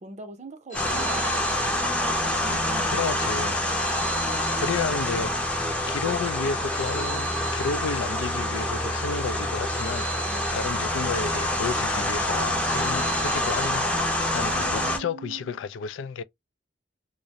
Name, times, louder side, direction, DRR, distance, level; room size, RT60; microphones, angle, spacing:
voice 1, 0.0-1.7 2.4-3.1 4.3-4.8 10.3-10.5 14.5-15.6, right 3 dB, 40° right, 0.6 m, -41 dB
Telephone, 0.7-2.6 3.7-5.6 6.7-8.6 9.7-11.6 12.7-14.6, right 3 dB, 45° left, 0.7 m, -40 dB
sound 1, 0.7-15.0, left 1 dB, 5° left, 0.5 m, -26 dB
voice 2, 2.9-3.6 4.6-5.5 5.9-13.9 14.3-16.2, left 5 dB, 80° left, 0.3 m, -32 dB
2.4 x 2.1 x 2.7 m
head